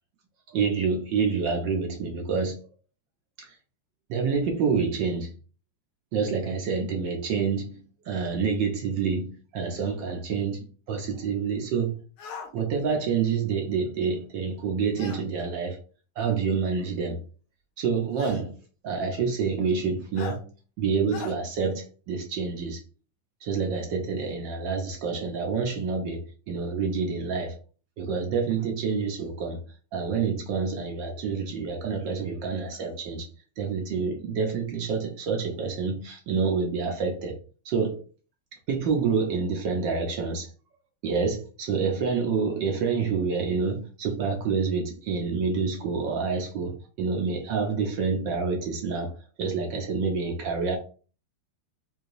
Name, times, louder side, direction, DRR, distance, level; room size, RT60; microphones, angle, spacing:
voice 1, 0.5-2.6 3.4-3.6 4.1-5.3 6.1-12.0 12.5-15.8 16.2-17.2 17.8-18.6 18.8-20.5 20.8-22.8 23.4-27.6 28.0-29.6 29.9-33.3 33.6-37.4 37.6-38.0 38.7-40.5 41.0-49.1 49.4-50.8, right 5 dB, 70° right, 1.2 m, -28 dB
sound 1, 12.2-12.5 15.0-15.2 16.5-16.6 18.2-18.4 20.2-20.4 21.1-21.3, left 6 dB, 80° left, 1.4 m, -38 dB
4.7 x 2.6 x 2.5 m
omnidirectional pair, 2.4 m